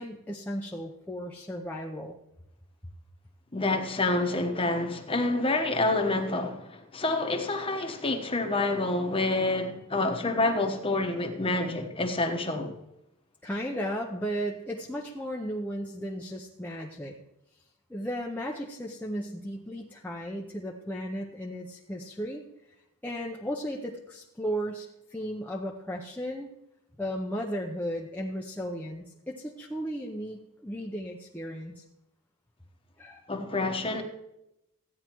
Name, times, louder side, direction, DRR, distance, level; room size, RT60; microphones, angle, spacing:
voice 1, 0.0-2.1 13.4-17.1 17.9-22.5 23.0-26.5 27.0-31.8 33.0-33.2, equal, 10° left, 0.7 m, -35 dB
voice 2, 3.5-12.7 33.3-34.0, left 2 dB, 25° left, 1.1 m, -28 dB
15.0 x 9.5 x 3.0 m
head